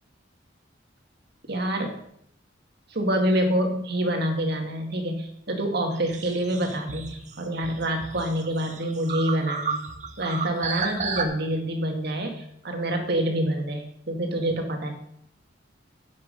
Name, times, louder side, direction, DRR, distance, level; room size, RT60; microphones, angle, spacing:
voice 1, 1.5-2.0 2.9-9.8 10.2-14.9, right 1 dB, 60° right, 3 dB, 2.0 m, -27 dB
sound 1, 5.9-11.2, right 5 dB, 40° right, 1.0 m, -33 dB
9.9 x 7.5 x 5.5 m, 0.71 s
head